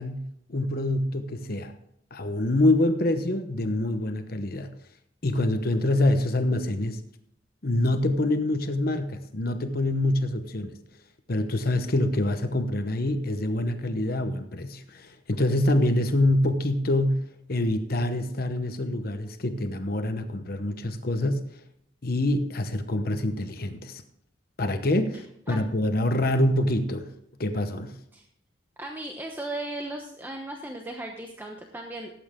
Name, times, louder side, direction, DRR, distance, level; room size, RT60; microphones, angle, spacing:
voice 1, 0.0-1.7 2.1-4.8 5.2-7.0 7.6-10.8 11.3-21.5 22.0-24.0 24.6-27.1 27.4-27.9, left 1 dB, 50° left, 8 dB, 1.0 m, -26 dB
voice 2, 28.8-32.1, right 1 dB, 10° right, 1 dB, 1.0 m, -36 dB
17.0 x 8.8 x 3.7 m, 0.74 s
head